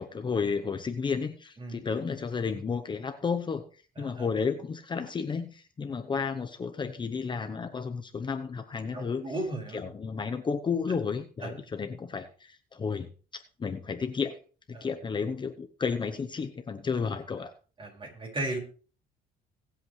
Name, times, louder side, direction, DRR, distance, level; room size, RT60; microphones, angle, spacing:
voice 1, 0.0-9.2 9.7-13.1 13.6-14.4 14.7-17.5, left 5 dB, 25° left, 7 dB, 0.8 m, -32 dB
voice 2, 4.0-4.3 8.9-9.8 11.4-11.5 14.7-14.9 17.8-18.6, right 2 dB, 30° right, 1 dB, 5.3 m, -35 dB
22.0 x 8.1 x 3.2 m, 0.39 s
cardioid pair, 110°, 17 cm